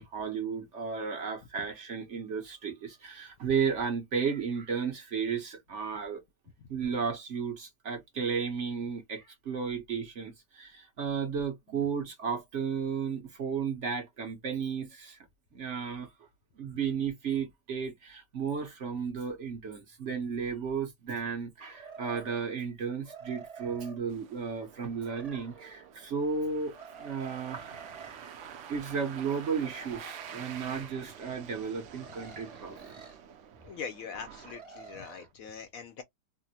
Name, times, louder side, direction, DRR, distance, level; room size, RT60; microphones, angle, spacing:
voice 1, 0.0-6.2 6.7-15.2 15.5-16.1 16.6-27.8 28.7-32.9, right 6 dB, 50° right, 1.1 m, -34 dB
sound 1, 21.7-22.5 23.0-24.0 25.0-25.9 26.7-28.4 29.6-30.9 31.9-33.2 34.4-35.3, right 5 dB, 25° right, 1.1 m, -49 dB
sound 2, 24.1-35.3, right 8 dB, 70° right, 0.7 m, -48 dB
voice 2, 33.6-36.0, left 6 dB, 70° left, 0.9 m, -42 dB
3.4 x 2.1 x 2.7 m
omnidirectional pair, 1.7 m